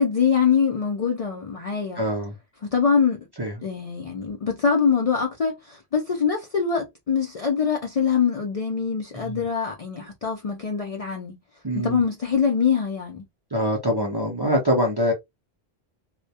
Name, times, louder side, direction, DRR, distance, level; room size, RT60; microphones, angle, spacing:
voice 1, 0.0-2.0 2.6-3.3 3.6-11.4 11.7-13.2, left 6 dB, 50° left, 0.4 m, -24 dB
voice 2, 1.9-2.4 3.4-3.5 9.1-9.4 11.6-12.0 13.5-15.1, equal, 30° right, 0.5 m, -24 dB
2.2 x 2.1 x 2.7 m
omnidirectional pair, 1.1 m